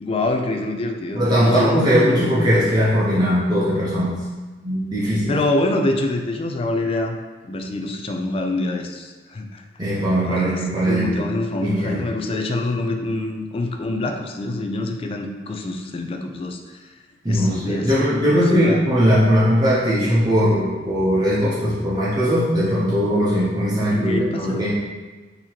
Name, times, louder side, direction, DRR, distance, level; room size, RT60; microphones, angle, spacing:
voice 1, 0.0-2.7 5.3-7.2 7.4-9.6 10.2-16.6 17.3-17.9 18.4-18.8 23.9-24.7, left 2 dB, 30° left, 4 dB, 0.3 m, -25 dB
voice 2, 1.1-4.2 4.6-5.4 9.8-11.1 11.6-12.0 17.2-24.7, equal, 25° right, -9 dB, 0.6 m, -19 dB
3.9 x 2.8 x 3.0 m, 1.3 s
head